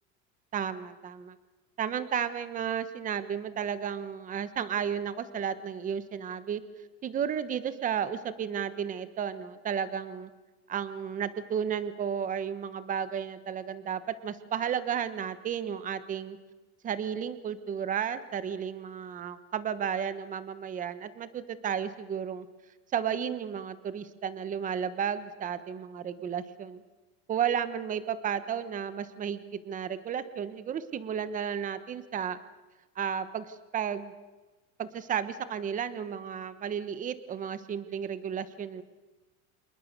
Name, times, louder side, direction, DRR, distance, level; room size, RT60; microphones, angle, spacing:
voice 1, 0.5-1.3 1.8-6.6 7.0-10.3 10.7-16.4 16.8-22.5 22.9-26.8 27.3-32.4 32.9-34.1 34.8-38.8, right 8 dB, 20° right, 13 dB, 1.1 m, -33 dB
27.5 x 21.0 x 6.7 m, 1.2 s
cardioid pair, 170°, 37 cm